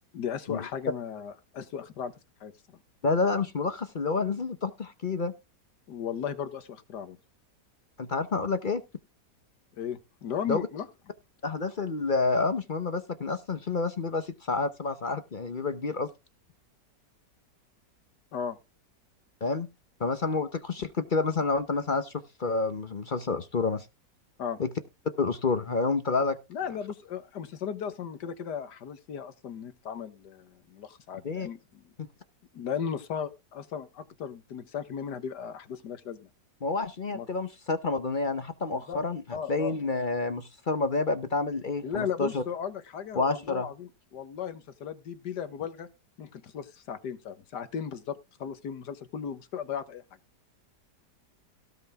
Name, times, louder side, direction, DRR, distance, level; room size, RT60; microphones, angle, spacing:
voice 1, 0.1-2.1 2.4-2.5 5.9-7.2 9.7-10.9 18.3-18.6 24.4-24.6 26.5-31.9 32.5-36.3 37.1-37.3 38.7-39.0 39.3-39.8 41.8-45.9 46.2-50.0, left 8 dB, 70° left, 1.8 m, -36 dB
voice 2, 3.0-5.3 8.0-8.8 10.5-10.7 11.4-16.1 19.4-19.7 20.0-23.9 24.6-24.7 25.2-26.4 31.2-31.5 36.6-42.4 43.2-43.7, left 3 dB, 40° left, 0.7 m, -29 dB
17.5 x 6.0 x 3.5 m
omnidirectional pair, 1.9 m